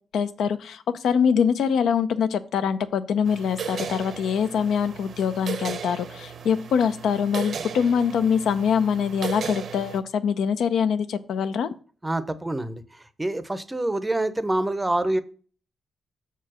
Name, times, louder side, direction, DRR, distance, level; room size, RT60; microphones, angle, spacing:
voice 1, 0.1-11.7, left 7 dB, 80° left, 11 dB, 0.6 m, -24 dB
sound 1, 3.3-10.0, right 6 dB, 55° right, 0.7 m, -36 dB
voice 2, 12.0-12.8 13.2-15.2, right 1 dB, 10° right, 13 dB, 0.6 m, -26 dB
6.8 x 4.7 x 6.2 m, 0.40 s
cardioid pair, 135°, 0 cm